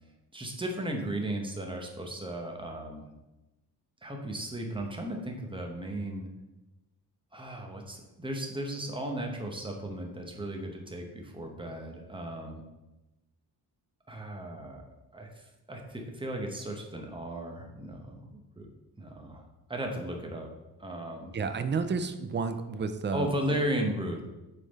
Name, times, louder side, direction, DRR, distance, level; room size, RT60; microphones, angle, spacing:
voice 1, 0.3-3.1 4.0-6.3 7.3-12.6 14.1-14.8 15.1-18.7 19.0-19.4 19.7-20.5 20.8-21.3 23.1-24.2, right 1 dB, 10° right, 2 dB, 0.9 m, -35 dB
voice 2, 21.3-23.3, right 5 dB, 30° right, 9 dB, 0.4 m, -31 dB
8.1 x 3.9 x 4.1 m, 1.0 s
wide cardioid pair, 175°, 41 cm